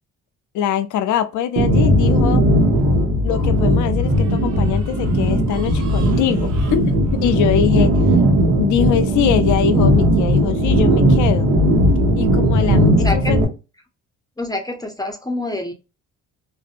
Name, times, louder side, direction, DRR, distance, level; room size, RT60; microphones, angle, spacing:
voice 1, 0.5-2.4 3.2-8.0 8.6-11.5 12.1-13.4, left 9 dB, 80° left, 0.5 m, -22 dB
sound 1, 1.6-13.4, equal, 70° right, 0.9 m, -17 dB
voice 2, 14.4-15.7, left 1 dB, 15° left, 0.6 m, -26 dB
2.6 x 2.1 x 2.4 m
cardioid pair, 90°, 30 cm